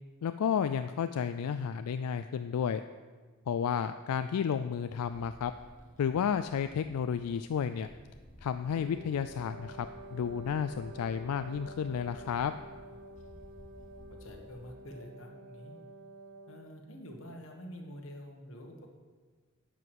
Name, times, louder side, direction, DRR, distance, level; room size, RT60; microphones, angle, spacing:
voice 1, 0.2-2.8 3.5-5.5 6.0-7.9 8.4-12.5, left 7 dB, 85° left, 10 dB, 0.3 m, -32 dB
sound 1, 4.8-14.7, equal, 35° left, 1.0 m, -55 dB
Wind instrument woodwind instrument, 8.7-16.8, right 1 dB, 55° right, 0.9 m, -49 dB
voice 2, 14.1-15.8 16.5-18.9, equal, 60° left, 2 dB, 1.5 m, -47 dB
11.0 x 4.8 x 7.9 m, 1.4 s
head